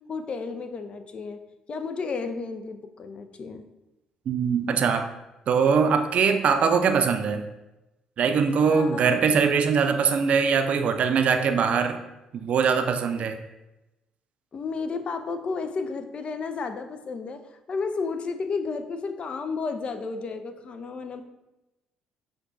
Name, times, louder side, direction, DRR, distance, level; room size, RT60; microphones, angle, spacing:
voice 1, 0.1-1.4 1.7-3.6 8.6-9.1 14.5-17.4 17.7-21.2, left 4 dB, 45° left, 8 dB, 0.4 m, -32 dB
voice 2, 4.3-5.1 5.5-7.5 8.2-12.0 12.3-13.4, right 6 dB, 55° right, 7 dB, 0.4 m, -22 dB
5.8 x 2.2 x 2.6 m, 0.98 s
hypercardioid pair, 50°, 3 cm